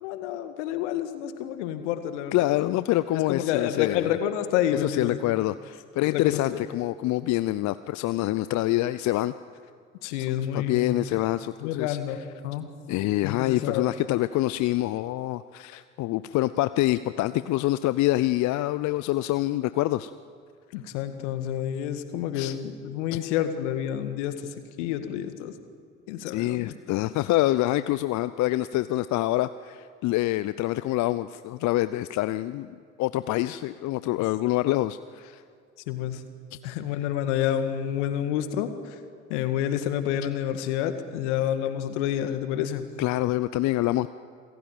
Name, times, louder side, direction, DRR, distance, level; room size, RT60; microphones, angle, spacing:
voice 1, 0.0-2.7 3.1-5.2 6.0-6.6 10.0-11.2 11.6-12.7 13.2-13.9 20.7-24.4 24.8-25.5 26.1-26.8 35.9-36.2 36.6-39.0 39.3-42.9, left 10 dB, 70° left, 9 dB, 1.9 m, -29 dB
voice 2, 2.3-4.1 4.7-9.3 10.5-12.0 12.9-20.1 22.3-22.6 23.1-23.2 26.3-35.4 43.0-44.1, left 16 dB, 50° left, 14 dB, 0.7 m, -26 dB
27.5 x 15.5 x 9.1 m, 2.2 s
hypercardioid pair, 60°, 36 cm